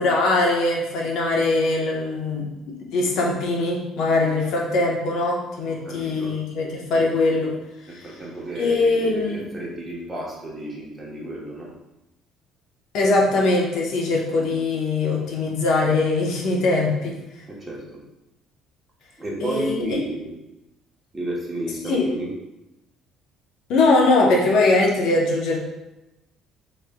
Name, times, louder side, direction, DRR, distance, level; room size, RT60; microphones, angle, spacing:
voice 1, 0.0-7.5 7.9-8.1 8.6-9.5 12.9-17.1 19.4-19.8 21.9-22.0 23.7-25.6, left 2 dB, 70° left, -1 dB, 0.8 m, -21 dB
voice 2, 5.7-6.4 7.9-11.7 17.5-18.0 19.2-20.4 21.1-22.3, right 1 dB, 15° right, -4 dB, 1.0 m, -32 dB
5.0 x 3.1 x 2.2 m, 0.94 s
cardioid pair, 130°, 0 cm